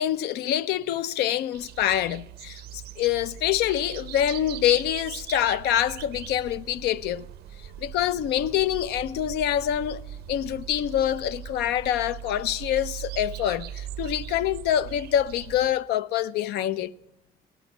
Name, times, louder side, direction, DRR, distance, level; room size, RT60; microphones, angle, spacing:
voice 1, 0.0-7.2 7.8-10.0 10.3-16.9, left 11 dB, 80° left, 0.5 m, -26 dB
sound 1, 1.5-15.7, right 11 dB, 75° right, 0.5 m, -40 dB
17.0 x 6.1 x 5.8 m
cardioid pair, 110°, 17 cm